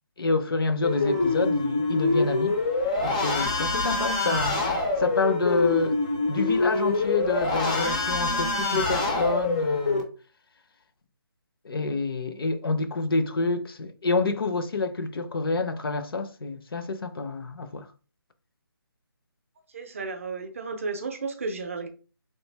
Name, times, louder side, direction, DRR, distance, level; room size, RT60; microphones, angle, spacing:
voice 1, 0.2-2.6 3.0-4.6 5.0-6.0 6.3-10.1 11.6-17.9, left 3 dB, 70° left, 0.6 m, -28 dB
sound 1, 0.8-10.0, left 3 dB, 15° left, 0.4 m, -25 dB
voice 2, 19.7-21.9, right 4 dB, 35° right, 0.5 m, -33 dB
3.2 x 2.4 x 3.2 m
figure-of-eight pair, 165°, 13 cm